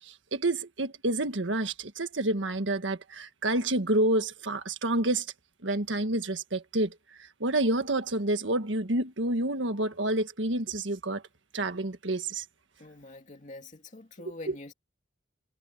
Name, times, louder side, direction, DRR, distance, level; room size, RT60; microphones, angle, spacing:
voice 1, 0.3-5.3 5.6-6.9 7.4-11.2 11.5-12.4, right 1 dB, 80° right, 1.6 m, -28 dB
voice 2, 12.8-14.7, left 2 dB, 40° left, 2.5 m, -45 dB
head